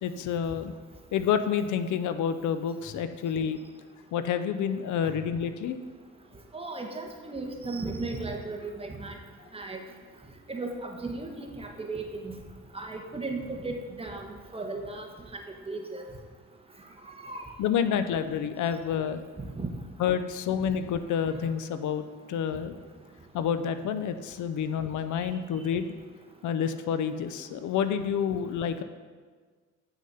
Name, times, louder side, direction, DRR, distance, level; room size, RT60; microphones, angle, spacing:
voice 1, 0.0-0.7 1.1-3.6 4.1-5.8 17.6-19.2 20.0-22.8 23.3-25.9 26.4-28.8, left 8 dB, 75° left, 11 dB, 0.6 m, -29 dB
voice 2, 6.5-9.1 9.5-9.8 10.5-12.3 12.7-14.3 14.5-15.1 15.3-15.4 15.7-16.0 17.2-17.4 19.6-19.7, right 3 dB, 20° right, 2 dB, 1.3 m, -35 dB
8.2 x 6.4 x 5.6 m, 1.5 s
cardioid pair, 90°, 30 cm